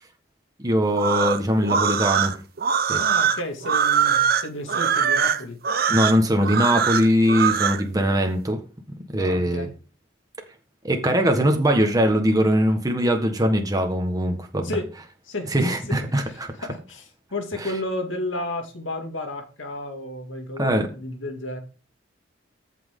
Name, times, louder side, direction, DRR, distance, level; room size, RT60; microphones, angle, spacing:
voice 1, 0.6-2.3 2.9-3.0 5.9-8.6 9.1-9.7 10.8-14.7 15.5-16.2 17.6-17.7 20.6-20.9, equal, 20° right, 4 dB, 1.4 m, -21 dB
sound 1, 0.9-7.8, right 7 dB, 55° right, 0.8 m, -22 dB
voice 2, 3.0-5.6 9.2-9.7 14.6-14.9 15.2-16.0 16.2-21.6, left 1 dB, 85° left, 4 dB, 2.3 m, -32 dB
14.0 x 6.0 x 3.8 m, 0.35 s
head